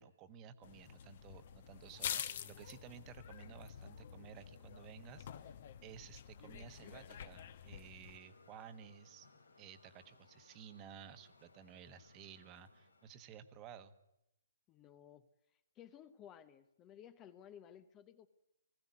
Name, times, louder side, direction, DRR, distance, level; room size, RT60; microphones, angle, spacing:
voice 1, 0.0-5.5 5.8-9.3 9.6-13.9, right 8 dB, 25° right, 11 dB, 1.2 m, -55 dB
sound 1, 0.6-8.2, left 9 dB, 45° left, 1.1 m, -47 dB
sound 2, 8.0-13.5, left 3 dB, 90° left, 2.5 m, -66 dB
voice 2, 14.7-15.3 15.8-18.3, left 9 dB, 20° left, 12 dB, 0.8 m, -56 dB
19.5 x 15.0 x 9.4 m, 0.86 s
hypercardioid pair, 145°, 0 cm